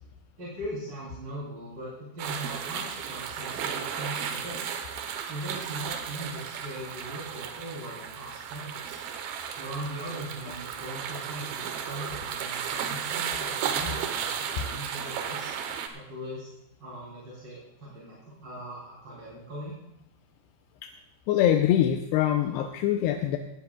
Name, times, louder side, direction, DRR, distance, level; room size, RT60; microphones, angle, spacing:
voice 1, 0.4-4.6 5.3-9.0 9.6-15.5 15.9-16.5 16.8-19.7, right 1 dB, 30° right, -8 dB, 3.9 m, -40 dB
sound 1, 2.2-15.9, right 7 dB, 70° right, 2.6 m, -34 dB
voice 2, 21.3-23.4, left 11 dB, 85° left, 4 dB, 2.8 m, -24 dB
17.5 x 15.0 x 2.4 m, 0.84 s
omnidirectional pair, 4.7 m